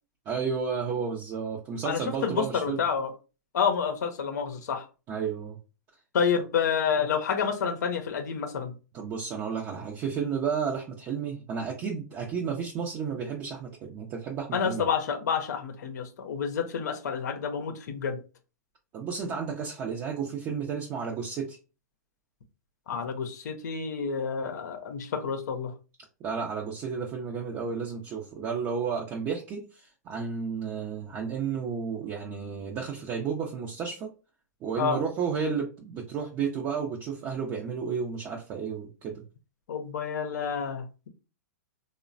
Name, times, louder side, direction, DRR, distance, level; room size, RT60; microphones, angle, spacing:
voice 1, 0.3-2.8 5.1-5.6 8.9-14.9 18.9-21.6 26.2-34.1 34.6-39.2, right 6 dB, 30° right, 0.5 m, -32 dB
voice 2, 1.8-3.1 3.5-4.9 6.1-8.7 14.5-18.2 22.9-25.7 34.8-35.0 39.7-41.1, left 6 dB, 75° left, 0.6 m, -29 dB
3.0 x 2.1 x 2.5 m
hypercardioid pair, 125°, 9 cm